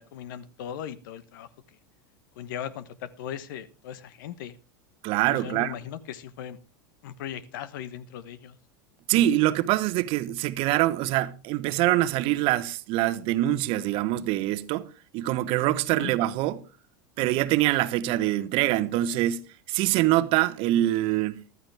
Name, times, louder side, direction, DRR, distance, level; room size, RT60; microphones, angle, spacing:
voice 1, 0.0-1.5 2.4-4.6 5.3-6.6 7.0-8.6 16.0-16.1, left 10 dB, 70° left, 1.1 m, -38 dB
voice 2, 5.0-5.7 9.1-16.6 17.2-21.4, right 15 dB, 55° right, 1.0 m, -24 dB
14.5 x 12.5 x 3.4 m
hypercardioid pair, 95°, 11 cm